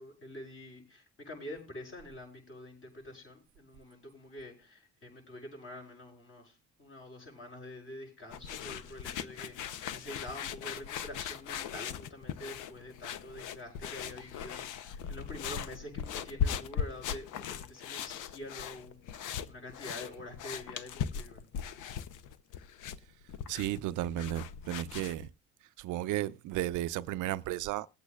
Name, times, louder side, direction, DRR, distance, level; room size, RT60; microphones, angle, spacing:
voice 1, 0.0-6.5 6.8-21.4, left 1 dB, 45° left, 6.4 m, -46 dB
sound 1, 8.3-25.3, left 8 dB, 85° left, 0.7 m, -39 dB
voice 2, 23.5-25.3 25.8-27.9, right 14 dB, 80° right, 0.5 m, -34 dB
21.0 x 8.3 x 2.3 m
cardioid pair, 90°, 30 cm